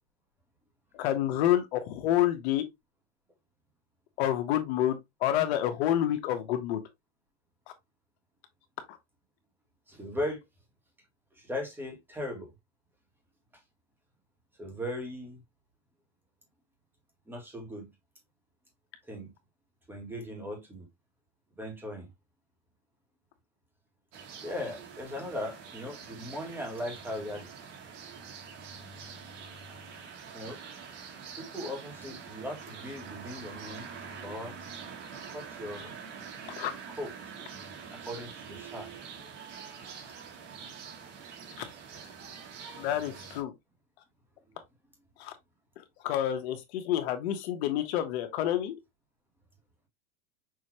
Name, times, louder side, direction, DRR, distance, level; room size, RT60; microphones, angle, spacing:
voice 1, 0.9-2.6 4.2-6.8 36.6-36.7 41.6-41.7 42.8-43.5 45.2-45.3 45.8-48.7, left 12 dB, 55° left, 1.2 m, -28 dB
voice 2, 9.9-10.4 11.4-12.5 14.6-15.4 17.3-17.9 19.1-19.3 19.9-20.9 21.6-22.1 24.4-27.5 30.3-30.6 31.4-33.9 34.2-34.6 35.3-35.9 36.9-37.1 38.0-38.9, left 1 dB, 5° right, 1.6 m, -38 dB
sound 1, 24.1-43.4, right 6 dB, 70° right, 2.2 m, -45 dB
6.2 x 2.8 x 3.0 m
supercardioid pair, 155°, 38 cm